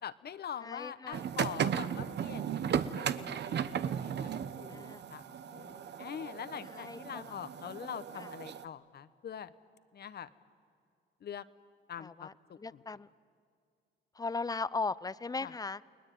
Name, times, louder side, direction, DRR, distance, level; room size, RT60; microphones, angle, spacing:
voice 1, 0.0-4.3 4.6-9.5 9.9-10.3 11.2-11.4 11.9-12.8 15.4-15.5, left 8 dB, 55° left, 14 dB, 1.1 m, -44 dB
voice 2, 0.6-1.3 4.7-5.0 6.7-7.3 8.2-8.3 12.0-13.1 14.2-15.8, left 4 dB, 20° left, 18 dB, 0.7 m, -38 dB
sound 1, 1.1-8.6, right 8 dB, 60° right, 1.1 m, -36 dB
30.0 x 20.0 x 9.4 m, 2.3 s
cardioid pair, 90°, 20 cm